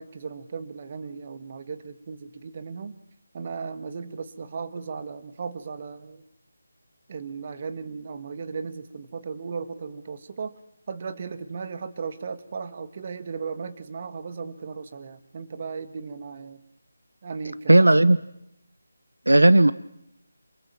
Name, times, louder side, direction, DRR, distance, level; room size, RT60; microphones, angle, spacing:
voice 1, 0.0-3.0 3.3-6.2 7.1-10.5 10.9-16.6 17.2-17.9, right 5 dB, 35° right, 11 dB, 1.7 m, -36 dB
voice 2, 17.7-18.2 19.3-19.7, right 2 dB, 85° right, 17 dB, 0.8 m, -15 dB
27.5 x 20.0 x 7.6 m, 0.80 s
figure-of-eight pair, 160°, 0 cm